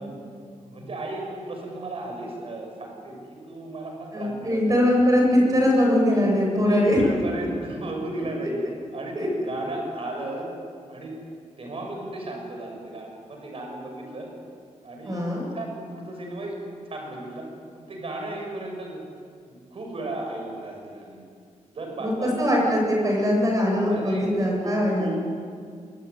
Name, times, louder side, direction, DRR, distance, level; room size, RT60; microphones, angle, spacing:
voice 1, 0.0-4.6 6.1-6.3 6.6-8.6 8.9-10.5 10.9-11.1 11.6-14.3 14.8-16.6 16.8-17.5 17.7-19.0 19.5-21.2 21.7-22.7 23.9-25.2, right 2 dB, 50° right, 1 dB, 6.6 m, -35 dB
voice 2, 4.1-7.0 9.1-9.3 15.0-15.5 22.0-25.2, left 1 dB, 30° right, -1 dB, 7.7 m, -21 dB
26.0 x 20.0 x 9.4 m, 2.2 s
wide cardioid pair, 165°, 12 cm